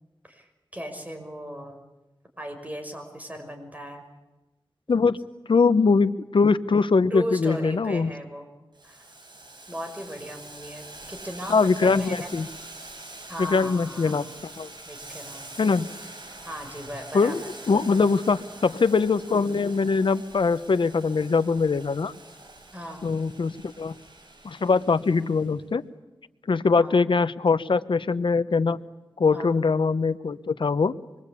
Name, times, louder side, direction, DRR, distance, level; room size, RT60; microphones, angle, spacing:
voice 1, 0.3-1.8 2.4-4.0 7.1-8.5 8.8-9.0 9.7-12.3 13.3-14.2 14.9-15.7 16.4-17.3 22.7-23.0 26.7-27.0 29.3-29.5, equal, 20° right, 4 dB, 5.9 m, -37 dB
voice 2, 4.9-5.2 5.5-8.1 11.5-12.5 13.4-14.7 15.6-15.9 17.1-22.1 23.0-24.0 24.4-25.8 26.5-28.8 29.2-30.9, left 4 dB, 75° left, 14 dB, 1.0 m, -22 dB
Boiling, 8.7-25.5, right 2 dB, 60° right, 7.0 m, -45 dB
25.5 x 22.5 x 8.5 m, 1.1 s
wide cardioid pair, 55°, 9 cm